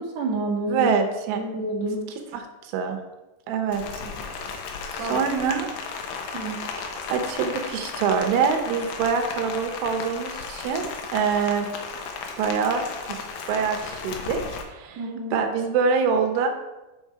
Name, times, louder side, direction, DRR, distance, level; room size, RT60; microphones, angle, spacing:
voice 1, 0.0-0.9 1.3-2.1 5.0-5.2 6.3-6.7 15.0-15.4, right 2 dB, 50° right, -4 dB, 2.3 m, -29 dB
voice 2, 0.7-1.4 2.3-3.0 3.5-3.8 4.9-5.7 7.1-11.7 12.4-13.2 13.5-15.0 15.3-16.5, right 6 dB, 85° right, 5 dB, 3.4 m, -25 dB
Rain, 3.7-14.6, left 5 dB, 85° left, 2.0 m, -35 dB
8.6 x 6.3 x 4.7 m, 1.1 s
omnidirectional pair, 5.4 m